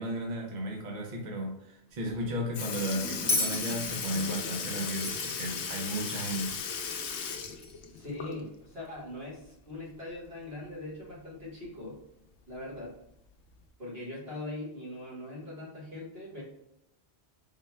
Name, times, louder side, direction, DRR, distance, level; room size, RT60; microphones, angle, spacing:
voice 1, 0.0-6.6, right 1 dB, 50° right, -1 dB, 0.8 m, -34 dB
Sink (filling or washing) / Liquid, 2.1-2.2 2.5-8.6 9.0-9.1 10.6-10.7 11.7-11.8 12.6-12.8 13.6-13.7, left 6 dB, 90° left, 0.9 m, -36 dB
Bell, 3.3-6.5 7.6-7.7, left 2 dB, 25° left, 0.5 m, -34 dB
voice 2, 7.9-12.0 12.5-12.9 13.8-16.4, left 2 dB, 65° right, -6 dB, 1.8 m, -41 dB
3.9 x 2.2 x 4.2 m, 0.80 s
omnidirectional pair, 1.1 m